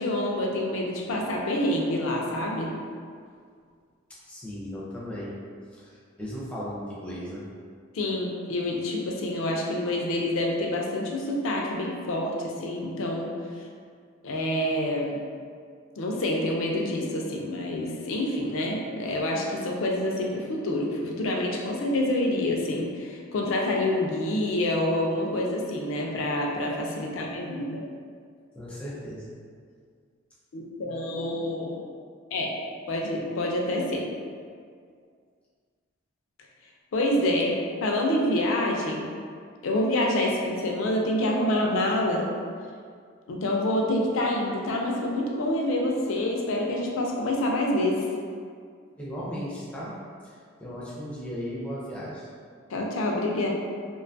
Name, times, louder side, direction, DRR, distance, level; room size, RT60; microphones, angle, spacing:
voice 1, 0.0-2.7 7.9-13.3 14.2-15.2 16.0-27.8 30.5-31.8 32.3-32.5 32.9-34.1 36.9-39.1 39.6-42.3 43.3-48.1 52.7-53.5, left 1 dB, 70° left, 0 dB, 0.4 m, -27 dB
voice 2, 4.3-5.3 5.7-7.4 28.6-29.3 49.0-49.9 50.2-52.3, equal, 5° left, -8 dB, 0.4 m, -36 dB
2.5 x 2.3 x 2.5 m, 2.1 s
head